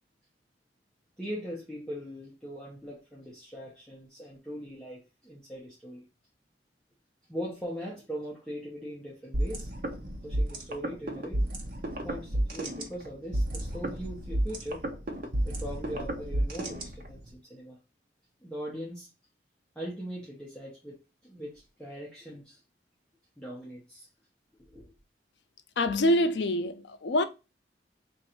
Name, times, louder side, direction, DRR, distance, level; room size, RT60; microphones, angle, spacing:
voice 1, 1.2-6.0 7.3-9.7 10.2-11.4 12.0-14.8 15.4-17.8 18.4-19.1 19.7-22.6 23.4-24.1 24.7-24.8, equal, 5° left, 0.9 m, -40 dB
sound 1, 9.3-17.3, right 1 dB, 50° right, 0.8 m, -32 dB
voice 2, 25.8-27.2, left 1 dB, 75° left, 0.5 m, -25 dB
3.1 x 2.6 x 4.2 m
head